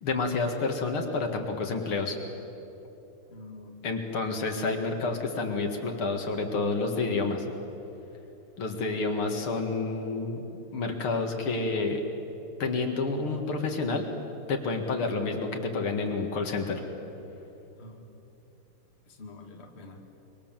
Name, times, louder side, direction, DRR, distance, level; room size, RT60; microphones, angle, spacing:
voice 1, 0.0-2.2 3.8-7.5 8.6-10.4 10.7-12.0 12.6-14.1 14.5-16.8, left 3 dB, 75° left, 4 dB, 2.9 m, -29 dB
voice 2, 3.3-3.8 17.8-18.1 19.1-20.1, left 2 dB, 30° left, 2 dB, 2.1 m, -46 dB
25.0 x 24.0 x 7.5 m, 3.0 s
omnidirectional pair, 2.4 m